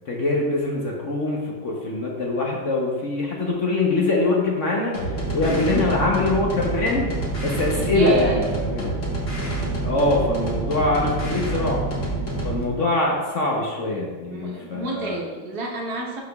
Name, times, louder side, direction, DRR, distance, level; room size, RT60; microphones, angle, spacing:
voice 1, 0.1-7.1 7.4-8.9 9.8-11.8 12.4-15.2, left 2 dB, 50° left, -2 dB, 0.9 m, -23 dB
sound 1, 4.9-12.6, right 2 dB, 35° left, 1.3 m, -27 dB
voice 2, 7.8-8.5 14.2-16.2, right 3 dB, 55° right, -1 dB, 1.5 m, -29 dB
11.5 x 4.9 x 2.3 m, 1.3 s
omnidirectional pair, 2.2 m